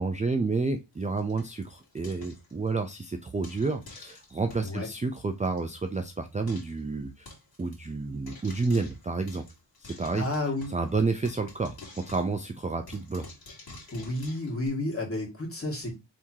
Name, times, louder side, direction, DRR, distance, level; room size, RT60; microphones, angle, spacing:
voice 1, 0.0-7.3 7.6-9.4 9.8-10.2 10.7-13.2, right 3 dB, 15° right, 6 dB, 0.4 m, -30 dB
Frying (food), 0.9-2.9 3.4-4.7 5.2-5.3 5.4-5.6 5.9-6.0 6.5-6.8 7.3-7.8 8.3-10.9 11.2-14.7, left 3 dB, 55° left, 1.9 m, -49 dB
voice 2, 10.1-10.7 13.9-16.0, left 2 dB, 30° left, -2 dB, 2.0 m, -31 dB
4.5 x 3.6 x 2.7 m, 0.23 s
wide cardioid pair, 110°, 44 cm